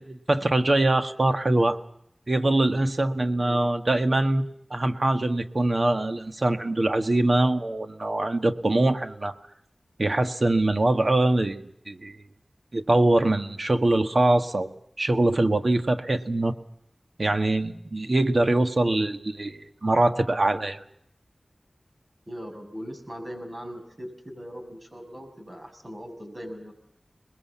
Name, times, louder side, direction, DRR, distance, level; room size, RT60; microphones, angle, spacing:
voice 1, 0.0-1.8 2.3-4.4 4.7-9.3 10.0-12.2 12.7-14.7 15.0-16.5 17.2-20.8, right 2 dB, 55° right, 8 dB, 1.6 m, -23 dB
voice 2, 3.4-3.7 22.3-26.7, equal, 40° right, 4 dB, 6.6 m, -40 dB
27.5 x 21.0 x 7.3 m, 0.73 s
wide cardioid pair, 60°, 0 cm